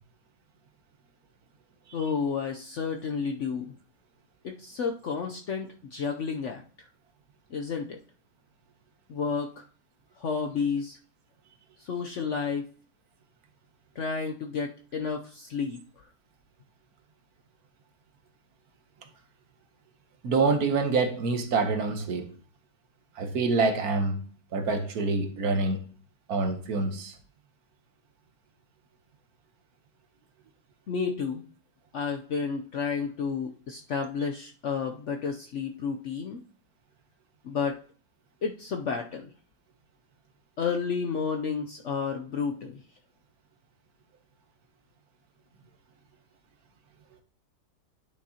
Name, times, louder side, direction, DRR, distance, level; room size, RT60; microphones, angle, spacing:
voice 1, 1.9-3.7 4.4-6.9 7.5-8.0 9.1-9.6 10.2-11.0 11.8-12.7 14.0-16.1 30.9-31.4 31.9-36.4 37.4-37.8 38.4-39.3 40.6-42.8, left 5 dB, 60° left, 0.8 m, -31 dB
voice 2, 20.2-22.3 23.1-24.2 24.5-25.8 26.3-27.1, right 3 dB, 65° right, 1.4 m, -26 dB
10.5 x 6.2 x 2.8 m
omnidirectional pair, 1.8 m